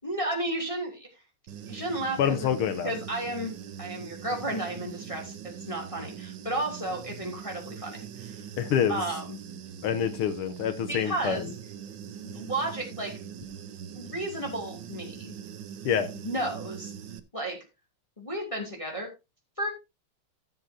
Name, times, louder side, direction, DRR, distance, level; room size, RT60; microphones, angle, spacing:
voice 1, 0.0-1.1 1.7-2.5 2.8-3.5 3.8-8.4 8.9-9.4 10.9-11.5 12.2-13.1 13.9-15.4 16.2-16.9 17.3-17.6 18.2-19.1 19.6-19.7, right 1 dB, 15° left, -1 dB, 2.8 m, -33 dB
Human voice / Buzz, 1.5-17.2, right 8 dB, 65° right, 1.4 m, -42 dB
voice 2, 2.2-2.9 8.6-9.0 9.8-11.4 15.9-16.1, left 8 dB, 80° left, 10 dB, 1.8 m, -26 dB
14.5 x 7.8 x 2.8 m, 0.26 s
omnidirectional pair, 2.4 m